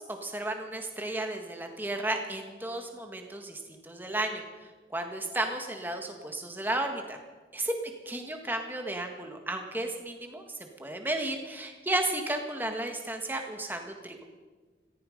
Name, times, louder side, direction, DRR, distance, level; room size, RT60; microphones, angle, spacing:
voice 1, 0.0-4.4 4.9-7.2 7.5-7.7 8.0-14.2, right 1 dB, 10° right, 4 dB, 1.7 m, -33 dB
18.0 x 15.0 x 5.2 m, 1.4 s
head